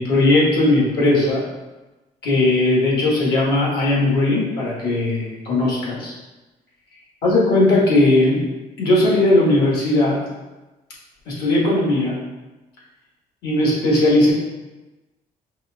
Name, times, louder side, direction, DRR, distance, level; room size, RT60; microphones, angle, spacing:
voice 1, 0.0-1.5 2.2-6.1 7.2-8.4 8.8-10.2 11.3-12.2 13.4-14.3, left 2 dB, 75° left, -5 dB, 1.4 m, -18 dB
5.4 x 2.5 x 2.3 m, 1.1 s
cardioid pair, 110°, 17 cm